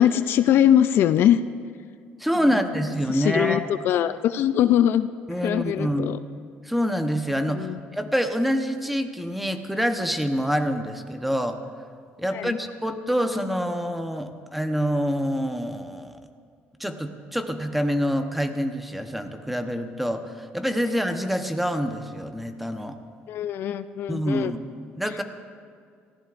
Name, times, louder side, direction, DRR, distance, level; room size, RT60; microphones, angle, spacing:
voice 1, 0.0-1.4 3.1-5.1 5.4-6.2 7.5-7.8 12.3-12.6 23.3-24.5, left 10 dB, 60° left, 12 dB, 0.4 m, -21 dB
voice 2, 2.2-3.7 5.3-6.2 6.6-11.6 12.2-16.2 16.8-23.0 24.1-24.6 24.9-25.2, equal, ahead, 6 dB, 1.0 m, -26 dB
23.5 x 15.0 x 2.6 m, 2.1 s
cardioid pair, 115°, 4 cm